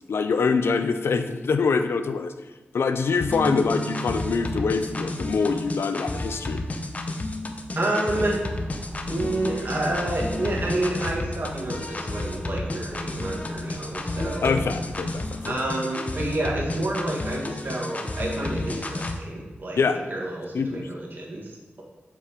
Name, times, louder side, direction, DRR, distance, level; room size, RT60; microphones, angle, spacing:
voice 1, 0.1-2.3 2.7-6.6 14.4-15.5 19.8-20.0 20.5-20.9, left 5 dB, 85° left, 9 dB, 0.5 m, -24 dB
sound 1, 3.2-19.2, left 2 dB, 35° left, 0.7 m, -32 dB
sound 2, 3.3-11.1, equal, 60° left, 1.3 m, -39 dB
voice 2, 7.8-8.4 9.1-14.5 15.5-19.8 20.1-21.5, right 1 dB, 55° right, -3 dB, 1.7 m, -29 dB
sound 3, 8.5-15.6, equal, 15° right, 2.1 m, -41 dB
7.7 x 6.1 x 3.0 m, 1.1 s
wide cardioid pair, 80°, 4 cm